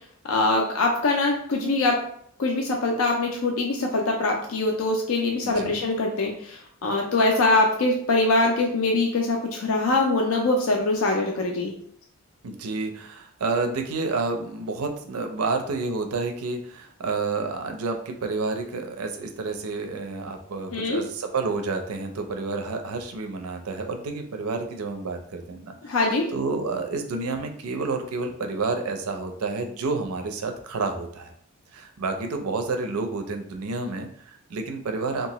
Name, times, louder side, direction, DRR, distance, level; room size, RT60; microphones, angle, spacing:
voice 1, 0.3-2.0 2.4-11.7 20.7-21.0 25.8-26.3, left 2 dB, 65° left, 1 dB, 0.4 m, -23 dB
voice 2, 12.4-25.7 26.3-31.3 31.7-35.3, right 3 dB, 75° right, 5 dB, 0.5 m, -29 dB
2.8 x 2.3 x 2.9 m, 0.63 s
head